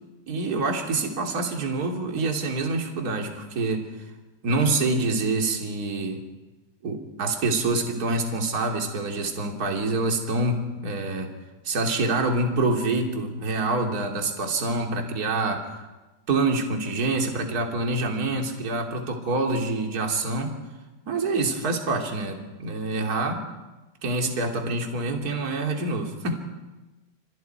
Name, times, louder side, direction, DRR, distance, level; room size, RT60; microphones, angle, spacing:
voice 1, 0.3-3.9 4.4-6.2 6.8-11.3 11.6-15.9 16.3-20.5 21.1-23.5 24.0-26.4, right 3 dB, 25° right, 2 dB, 2.5 m, -26 dB
29.5 x 25.5 x 4.7 m, 1.1 s
omnidirectional pair, 4.7 m